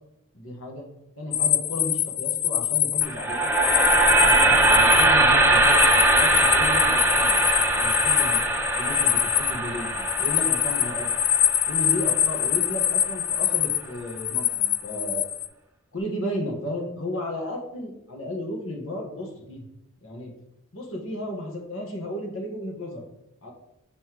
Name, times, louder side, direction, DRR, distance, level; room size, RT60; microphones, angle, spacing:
voice 1, 0.3-0.8 1.2-3.5 4.2-7.4 7.7-8.4 8.7-11.1 11.7-15.3 15.9-19.6 20.0-20.3 20.7-23.0 23.4-23.5, left 1 dB, 75° left, 0 dB, 1.4 m, -34 dB
sound 1, 1.3-15.5, left 11 dB, 40° left, 0.3 m, -24 dB
sound 2, 3.0-13.1, right 2 dB, 10° right, 0.6 m, -21 dB
6.5 x 5.7 x 3.0 m, 0.86 s
head